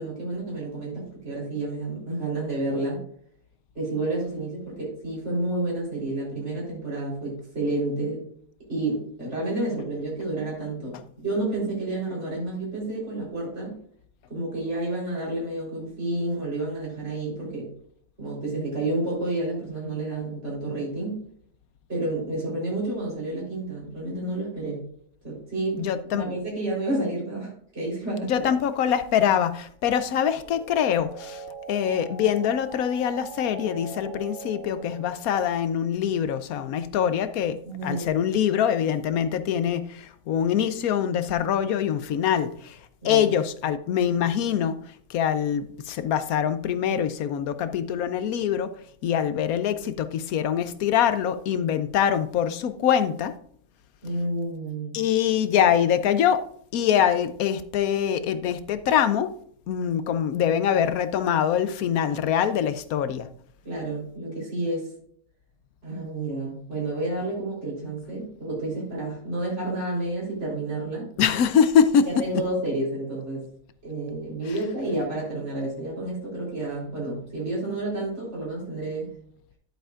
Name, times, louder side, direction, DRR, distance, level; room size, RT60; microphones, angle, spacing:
voice 1, 0.0-3.0 3.7-8.3 8.7-13.7 14.3-17.7 18.2-21.2 21.9-24.9 25.2-25.8 26.1-28.5 37.6-38.1 43.0-43.3 54.0-55.0 63.6-64.9 65.8-71.1 72.1-73.5 73.8-79.1, right 2 dB, 50° right, 4.2 m, -30 dB
voice 2, 25.8-26.2 28.2-31.4 31.7-42.8 43.0-44.8 45.1-48.7 49.0-53.3 54.9-56.4 56.7-59.3 59.7-63.3 71.2-72.0, left 8 dB, 85° left, 1.1 m, -24 dB
sound 1, 30.4-35.3, right 4 dB, 60° left, 2.7 m, -41 dB
11.5 x 7.7 x 2.4 m
omnidirectional pair, 1.5 m